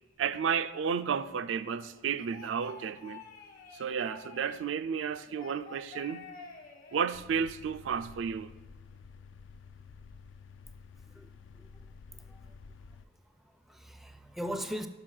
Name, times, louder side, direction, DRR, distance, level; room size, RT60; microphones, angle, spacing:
voice 1, 0.2-3.2 3.7-6.3 6.9-8.5, right 7 dB, 75° right, 0.4 m, -32 dB
sound 1, 1.8-4.7 5.2-7.0, left 5 dB, 45° left, 1.1 m, -49 dB
sound 2, 7.1-13.0, left 5 dB, 70° left, 0.4 m, -51 dB
voice 2, 12.1-12.6 13.4-14.9, equal, ahead, 0.4 m, -40 dB
6.1 x 5.7 x 6.3 m
head